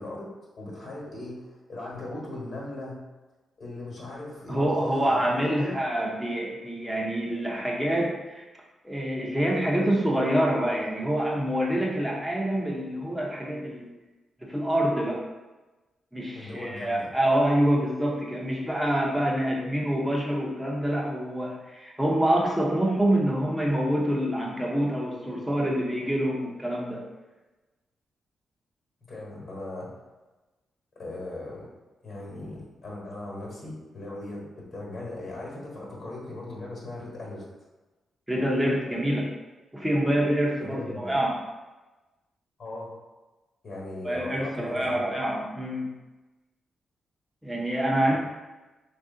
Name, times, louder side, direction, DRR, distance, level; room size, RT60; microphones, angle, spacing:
voice 1, 0.0-3.0 3.6-5.8 16.3-17.1 29.0-29.9 30.9-31.7 32.0-37.4 40.6-41.2 42.6-42.9 43.6-45.1 48.1-48.2, left 2 dB, 55° left, -4 dB, 1.3 m, -38 dB
voice 2, 4.5-8.5 8.8-13.9 14.4-15.2 16.1-27.0 38.3-39.3 39.7-41.4 44.0-45.9 47.4-48.2, right 1 dB, 5° right, -3 dB, 0.7 m, -26 dB
3.2 x 2.5 x 3.7 m, 1.1 s
cardioid pair, 75°, 0 cm